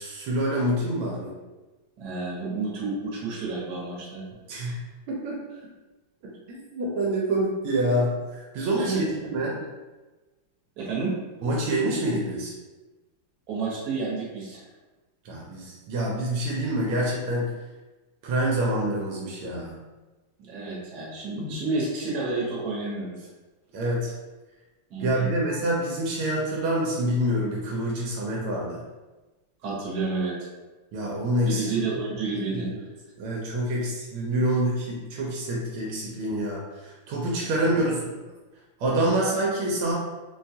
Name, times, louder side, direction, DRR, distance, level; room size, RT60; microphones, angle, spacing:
voice 1, 0.0-1.4 4.5-4.8 5.1-5.4 6.5-9.6 11.4-12.5 15.2-17.5 18.2-19.8 23.7-24.1 25.0-28.8 30.9-31.6 32.5-32.8 33.2-38.1 38.8-39.9, right 1 dB, 80° right, -3 dB, 1.5 m, -26 dB
voice 2, 2.0-4.2 8.7-9.1 10.8-11.1 13.5-14.6 20.5-23.3 24.9-25.3 29.6-30.5 31.4-32.7 37.4-37.6, right 3 dB, 55° right, -5 dB, 1.4 m, -30 dB
4.0 x 2.3 x 2.7 m, 1.2 s
omnidirectional pair, 2.3 m